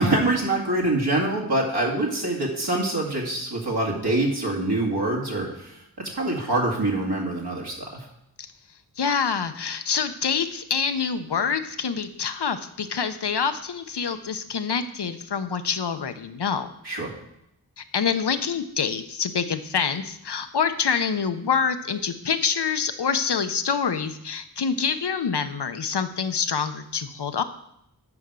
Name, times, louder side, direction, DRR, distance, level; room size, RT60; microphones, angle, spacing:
voice 1, 0.0-8.1 16.8-17.1, right 2 dB, 75° right, -1 dB, 2.4 m, -25 dB
voice 2, 9.0-16.7 17.8-27.4, left 6 dB, 85° left, 9 dB, 0.8 m, -26 dB
9.6 x 5.0 x 6.8 m, 0.77 s
wide cardioid pair, 70°, 39 cm